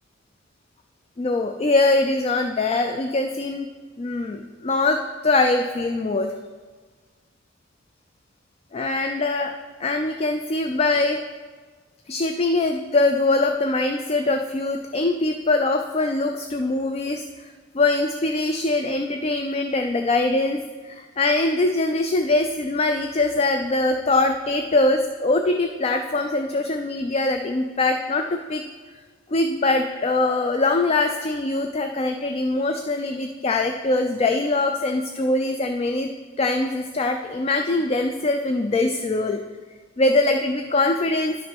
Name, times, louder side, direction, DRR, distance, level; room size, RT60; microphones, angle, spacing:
voice 1, 1.2-3.7 4.0-6.3 8.7-9.5 9.8-11.2 12.1-28.6 29.3-36.1 36.4-39.4 40.0-41.4, left 2 dB, 30° left, 6 dB, 0.4 m, -22 dB
10.5 x 6.1 x 4.5 m, 1.4 s
head